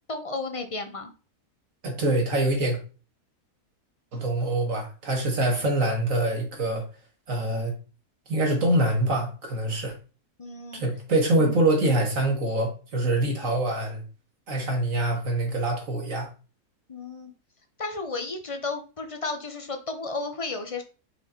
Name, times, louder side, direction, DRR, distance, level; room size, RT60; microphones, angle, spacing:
voice 1, 0.1-1.1 10.4-10.8 16.9-17.3 17.8-20.8, left 3 dB, 30° left, 0.7 m, -33 dB
voice 2, 1.8-2.8 4.1-6.8 7.3-7.7 8.3-9.9 10.7-14.0 14.5-16.3, right 1 dB, 55° right, 2.0 m, -25 dB
5.4 x 4.1 x 4.3 m
omnidirectional pair, 1.7 m